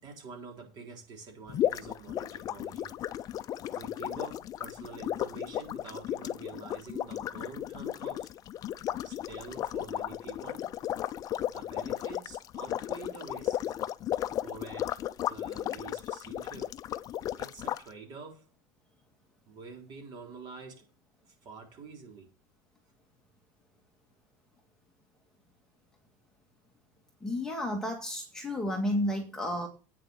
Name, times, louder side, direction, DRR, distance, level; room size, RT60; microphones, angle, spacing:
voice 1, 0.0-2.9 3.7-8.3 9.0-10.7 11.5-13.7 14.4-15.0 15.3-16.8 17.4-18.5 19.5-20.9 21.2-22.3, right 4 dB, 40° right, 1 dB, 4.0 m, -47 dB
sound 1, 1.5-17.8, left 12 dB, 35° left, 0.5 m, -35 dB
voice 2, 27.2-29.7, left 1 dB, 5° left, 1 dB, 1.9 m, -31 dB
8.9 x 6.7 x 6.4 m, 0.33 s
supercardioid pair, 140°, 11 cm